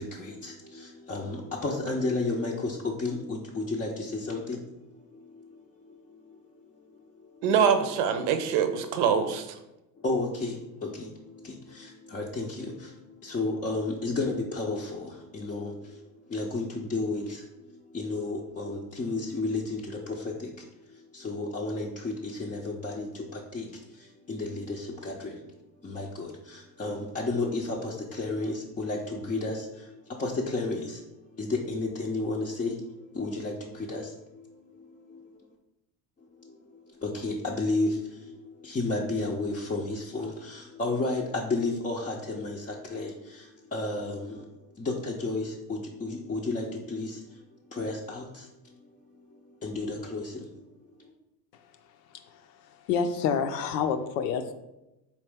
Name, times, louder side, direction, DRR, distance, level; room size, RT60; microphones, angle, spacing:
voice 1, 0.0-6.4 6.7-6.9 7.2-7.5 10.0-35.4 36.3-44.5 44.7-47.4 47.7-51.1, left 2 dB, 15° left, -4 dB, 0.5 m, -33 dB
voice 2, 7.4-9.6, right 7 dB, 65° right, 9 dB, 0.7 m, -24 dB
voice 3, 52.9-54.5, left 6 dB, 75° left, 8 dB, 0.6 m, -27 dB
4.2 x 3.0 x 3.4 m, 0.94 s
hypercardioid pair, 70°, 49 cm